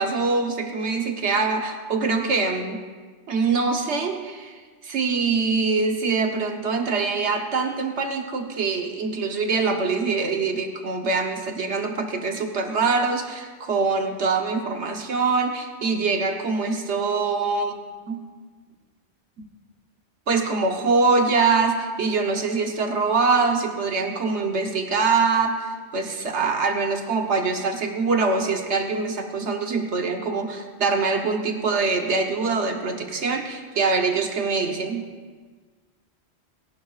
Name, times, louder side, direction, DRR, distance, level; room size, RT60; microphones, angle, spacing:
voice 1, 0.0-2.8 3.3-17.8 18.1-18.2 20.3-35.0, right 4 dB, 80° right, 4 dB, 1.3 m, -24 dB
28.0 x 11.0 x 2.5 m, 1.4 s
omnidirectional pair, 1.2 m